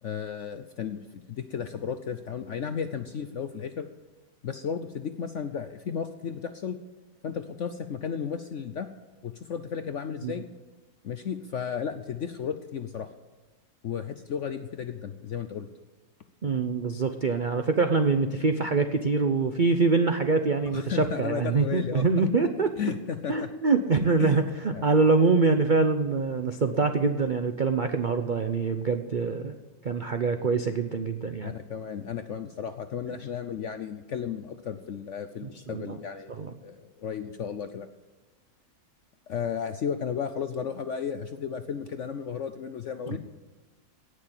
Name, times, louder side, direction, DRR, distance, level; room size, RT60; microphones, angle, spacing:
voice 1, 0.0-3.9 4.4-6.8 7.2-8.9 9.2-10.5 11.0-13.1 13.8-15.7 20.6-22.1 22.8-23.5 24.2-24.9 31.4-37.9 39.3-43.2, left 7 dB, 65° left, 9 dB, 0.7 m, -34 dB
voice 2, 16.4-22.7 23.3-29.5 29.8-31.5 35.7-36.0 36.4-36.5 43.1-43.2, right 4 dB, 70° right, 7 dB, 0.4 m, -24 dB
17.5 x 6.6 x 8.7 m, 1.3 s
omnidirectional pair, 2.0 m